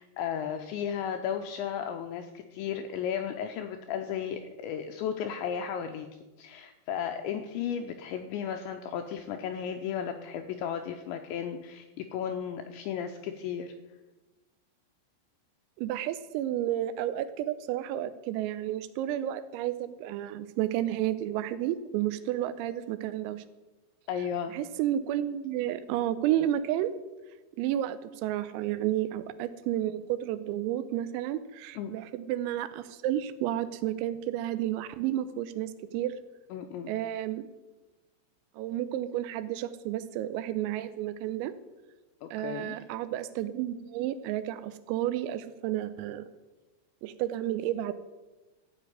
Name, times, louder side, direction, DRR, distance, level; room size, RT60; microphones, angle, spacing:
voice 1, 0.0-6.1 6.4-13.7 24.1-24.5 31.8-31.9 36.5-36.9 42.2-42.8, left 8 dB, 85° left, 6 dB, 2.6 m, -34 dB
voice 2, 15.8-23.4 24.5-26.9 27.6-36.1 36.9-37.5 38.6-41.6 42.3-46.3 47.0-47.9, right 12 dB, 85° right, 12 dB, 3.3 m, -31 dB
14.5 x 5.4 x 9.6 m, 1.1 s
omnidirectional pair, 5.9 m